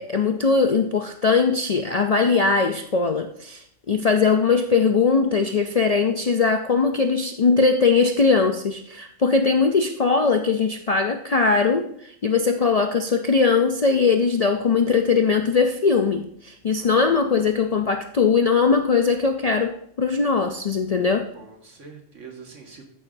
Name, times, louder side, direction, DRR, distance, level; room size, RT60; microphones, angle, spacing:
voice 1, 0.0-21.3, left 4 dB, 55° left, 5 dB, 0.4 m, -20 dB
voice 2, 16.8-17.1 21.3-22.8, right 5 dB, 75° right, 1 dB, 2.0 m, -44 dB
14.5 x 6.9 x 2.6 m, 0.70 s
omnidirectional pair, 1.3 m